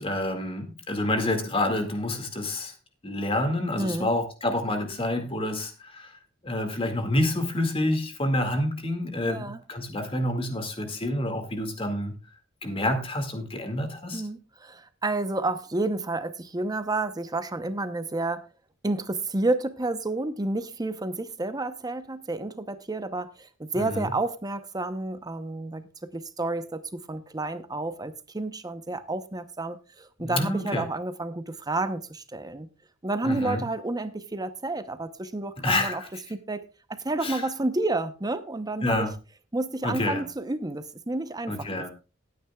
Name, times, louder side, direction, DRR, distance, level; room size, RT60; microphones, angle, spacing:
voice 1, 0.0-2.7 3.0-6.2 6.4-12.1 12.6-14.2 23.7-24.1 30.2-30.9 33.2-33.6 35.6-36.1 37.2-37.4 38.8-39.1 39.8-40.2 41.5-41.9, left 1 dB, 30° left, 2.1 m, -28 dB
voice 2, 3.8-4.1 9.2-9.6 14.1-18.5 18.8-32.7 33.0-36.0 36.3-36.6 36.9-39.1 39.5-41.9, right 2 dB, 20° right, 0.8 m, -30 dB
19.0 x 9.4 x 2.3 m
head